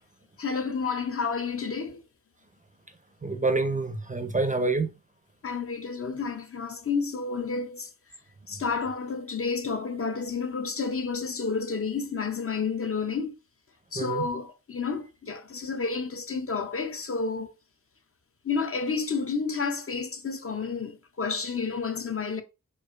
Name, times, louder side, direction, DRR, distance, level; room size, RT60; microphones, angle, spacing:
voice 1, 0.4-2.0 5.4-7.9 8.5-13.4 13.9-17.5 18.4-22.4, left 5 dB, 45° left, 0.5 m, -30 dB
voice 2, 3.2-4.9 14.0-14.3, right 3 dB, 25° right, 0.5 m, -27 dB
4.6 x 2.4 x 2.4 m
wide cardioid pair, 105°, 33 cm